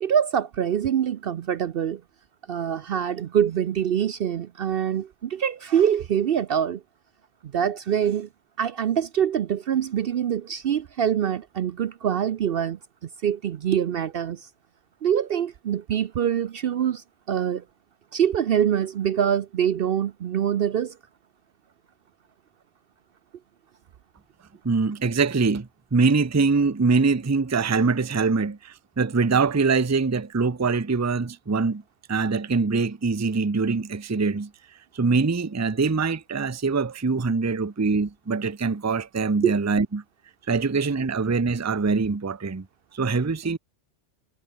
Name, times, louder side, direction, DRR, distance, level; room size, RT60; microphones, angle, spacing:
voice 1, 0.0-2.0 2.5-6.8 7.5-8.3 8.6-12.8 13.2-14.5 15.0-17.6 18.1-21.0 39.4-39.5, right 9 dB, 60° right, 0.7 m, -24 dB
voice 2, 24.6-31.8 32.1-34.5 34.9-40.0 40.5-42.7 42.9-43.6, right 4 dB, 20° right, 0.6 m, -23 dB
omnidirectional pair, 1.2 m